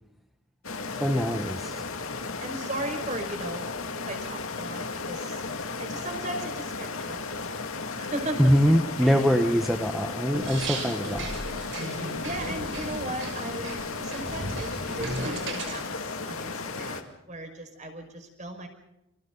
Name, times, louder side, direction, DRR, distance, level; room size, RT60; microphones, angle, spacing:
sound 1, 0.6-17.0, left 4 dB, 85° left, 2.4 m, -35 dB
voice 1, 1.0-1.8 8.4-11.3, equal, ahead, 5 dB, 1.2 m, -23 dB
voice 2, 2.4-3.7 4.1-5.4 5.8-7.6 8.0-8.7 9.0-9.3 12.1-18.7, right 1 dB, 35° right, 5 dB, 5.5 m, -37 dB
sound 2, 10.3-15.8, right 2 dB, 60° right, 6.3 m, -36 dB
30.0 x 27.0 x 4.0 m, 0.89 s
head